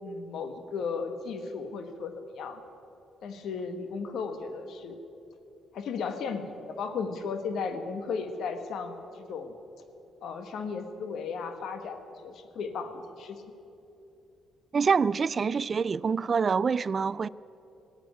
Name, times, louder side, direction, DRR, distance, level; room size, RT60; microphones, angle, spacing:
voice 1, 0.0-2.6 3.2-4.9 5.7-9.5 10.2-13.4, left 5 dB, 70° left, 8 dB, 1.4 m, -35 dB
voice 2, 14.7-17.3, right 5 dB, 40° right, 20 dB, 0.3 m, -26 dB
19.5 x 8.1 x 9.0 m, 2.8 s
cardioid pair, 90°, 0 cm